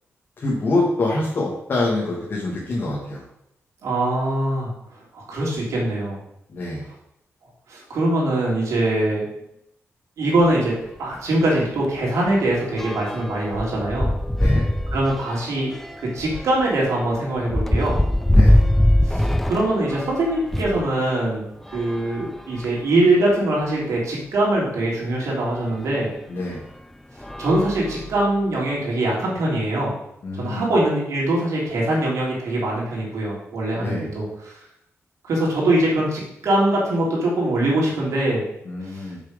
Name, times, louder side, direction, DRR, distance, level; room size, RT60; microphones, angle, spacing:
voice 1, 0.4-3.2 6.5-6.8 14.4-14.6 18.3-18.6 26.3-26.6 30.2-30.7 33.7-34.1 38.7-39.2, left 2 dB, 45° left, -4 dB, 1.9 m, -25 dB
voice 2, 3.8-4.7 5.1-6.2 7.7-9.2 10.2-14.1 14.9-15.7 16.0-17.9 19.0-21.4 21.7-26.1 27.4-29.9 30.3-34.6 35.2-38.4 38.8-39.1, right 1 dB, 85° right, -4 dB, 3.5 m, -22 dB
sound 1, 10.4-10.6 11.0-11.1 11.4-20.9 21.6-22.9 23.6-23.7 24.0-24.1 25.8-25.9 26.5-26.8 27.2-28.4, left 1 dB, 5° left, 0.4 m, -23 dB
6.9 x 6.5 x 5.3 m, 0.80 s
wide cardioid pair, 155°, 5 cm